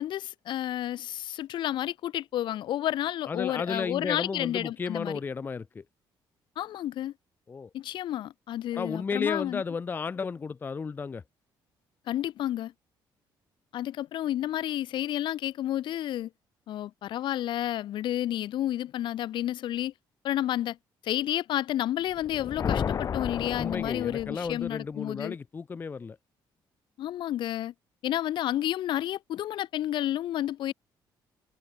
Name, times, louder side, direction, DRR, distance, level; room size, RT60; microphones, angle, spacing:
voice 1, 0.0-5.2 6.6-7.1 7.7-9.6 12.1-12.7 13.7-16.3 16.7-19.9 20.2-20.8 21.0-25.4 27.0-27.7 28.0-30.7, left 12 dB, 65° left, 1.2 m, -31 dB
voice 2, 3.3-5.8 7.5-7.7 8.7-11.2 23.6-26.2, left 5 dB, 25° left, 0.5 m, -33 dB
sound 1, 22.1-24.8, left 7 dB, 40° left, 1.2 m, -32 dB
cardioid pair, 140°, 9 cm